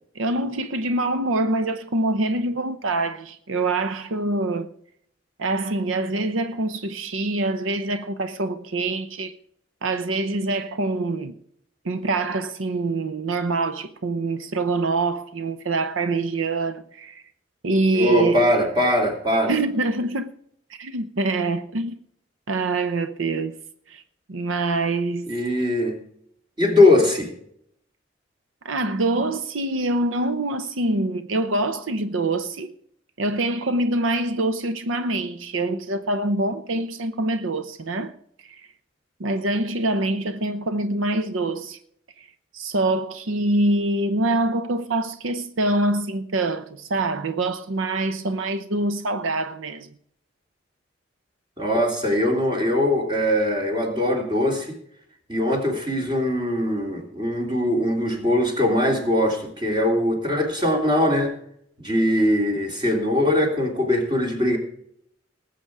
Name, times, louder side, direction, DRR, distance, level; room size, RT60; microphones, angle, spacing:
voice 1, 0.1-4.7 5.4-9.3 9.8-11.3 11.8-17.2 17.6-18.6 19.5-20.3 20.7-22.0 22.5-23.5 23.9-24.0 24.3-25.4 28.6-32.7 33.2-38.1 38.4-38.7 39.2-41.8 42.2-42.3 42.5-49.9, right 2 dB, 85° right, 0.8 m, -25 dB
voice 2, 17.9-19.5 25.3-26.0 26.6-27.3 51.6-54.7 55.3-61.3 61.8-64.6, left 1 dB, 25° right, 3.1 m, -21 dB
19.5 x 7.9 x 4.8 m
head